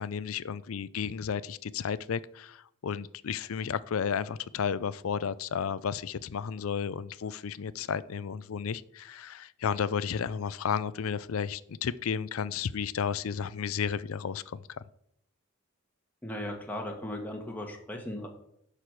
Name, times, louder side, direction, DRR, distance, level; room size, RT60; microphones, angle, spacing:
voice 1, 0.0-14.7, left 7 dB, 80° left, 0.4 m, -33 dB
voice 2, 16.2-18.3, left 1 dB, 10° left, 1.5 m, -37 dB
10.0 x 5.0 x 6.2 m
head